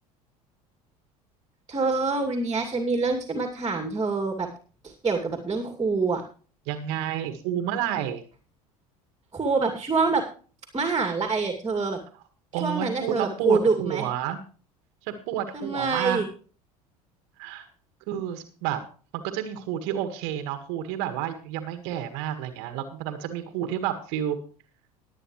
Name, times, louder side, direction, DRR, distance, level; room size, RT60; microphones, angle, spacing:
voice 1, 1.7-4.5 5.0-6.2 9.3-10.2 10.7-12.0 12.6-14.1 15.5-16.3, right 4 dB, 20° right, 5 dB, 2.5 m, -25 dB
voice 2, 6.7-8.2 12.5-14.4 15.0-16.2 17.4-17.7 18.1-18.8 19.2-24.4, right 10 dB, 60° right, 9 dB, 1.7 m, -30 dB
19.5 x 9.1 x 3.2 m, 0.39 s
hypercardioid pair, 70°, 19 cm